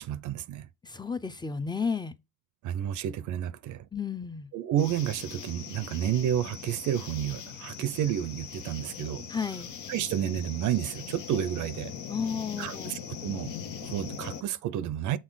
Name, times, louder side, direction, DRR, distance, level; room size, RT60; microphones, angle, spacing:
voice 1, 0.0-0.7 2.6-3.9 4.5-9.2 9.9-11.9 12.6-13.5 13.8-15.2, right 10 dB, 80° right, 0.6 m, -30 dB
voice 2, 0.8-2.1 3.9-4.5 9.3-9.7 12.1-13.0, left 5 dB, 15° left, 0.5 m, -32 dB
sound 1, 4.8-14.4, left 7 dB, 70° left, 1.0 m, -41 dB
6.4 x 4.1 x 3.8 m
cardioid pair, 90°, 30 cm